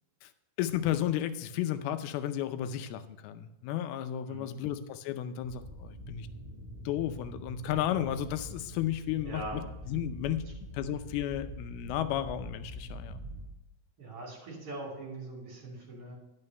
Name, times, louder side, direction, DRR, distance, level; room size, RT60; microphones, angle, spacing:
voice 1, 0.6-6.3 6.9-10.5 10.7-13.2, left 11 dB, 90° left, 10 dB, 2.6 m, -33 dB
voice 2, 4.3-4.7 9.2-9.6 14.0-16.1, right 2 dB, 40° right, -2 dB, 3.7 m, -42 dB
sound 1, 5.4-13.4, right 1 dB, 5° right, 4.0 m, -44 dB
11.0 x 6.3 x 5.4 m, 0.94 s
omnidirectional pair, 4.4 m